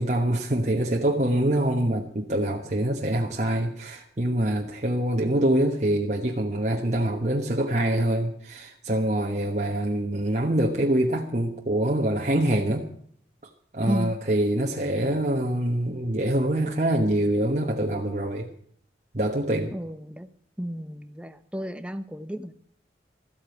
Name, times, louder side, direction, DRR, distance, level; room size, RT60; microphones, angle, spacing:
voice 1, 0.0-12.9 13.7-18.5 19.1-19.7, right 1 dB, 40° right, 0 dB, 1.2 m, -25 dB
voice 2, 13.8-14.1 19.7-20.3 20.6-22.6, equal, 5° right, 11 dB, 0.7 m, -33 dB
14.0 x 8.2 x 9.1 m, 0.65 s
head